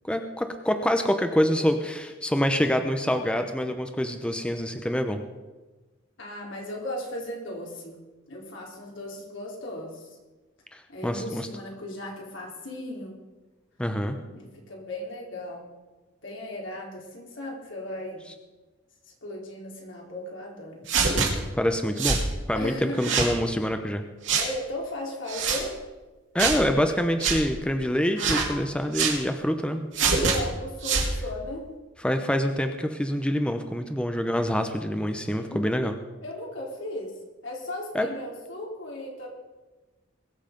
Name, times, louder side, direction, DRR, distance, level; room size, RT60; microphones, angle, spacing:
voice 1, 0.0-5.2 10.7-11.5 13.8-14.2 21.6-22.2 22.5-24.0 26.3-29.9 32.0-35.9 37.9-38.1, equal, 5° left, 7 dB, 0.7 m, -26 dB
voice 2, 6.2-8.0 8.3-10.2 10.9-13.2 14.3-15.7 16.2-18.3 19.1-20.8 22.5-23.1 24.4-25.7 30.2-31.6 35.4-37.1 37.4-39.3, left 1 dB, 80° left, -2 dB, 3.7 m, -36 dB
sound 1, 20.9-21.3 22.0-22.3 23.0-23.3 24.3-24.5 25.3-25.6 26.4-26.6 27.2-27.4 28.2-28.5 28.9-29.2 29.9-30.4 30.8-31.1, right 5 dB, 70° right, 2.7 m, -24 dB
21.5 x 7.3 x 5.2 m, 1.2 s
head